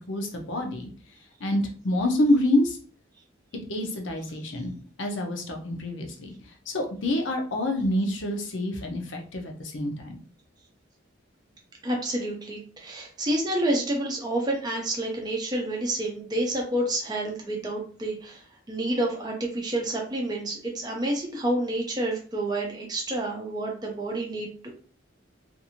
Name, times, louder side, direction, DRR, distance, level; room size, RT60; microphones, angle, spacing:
voice 1, 0.1-0.9 1.4-2.8 3.7-6.3 6.7-10.2, left 1 dB, 70° left, 3 dB, 0.6 m, -27 dB
voice 2, 11.8-24.8, right 1 dB, 20° right, 0 dB, 0.5 m, -29 dB
2.5 x 2.5 x 2.8 m, 0.42 s
head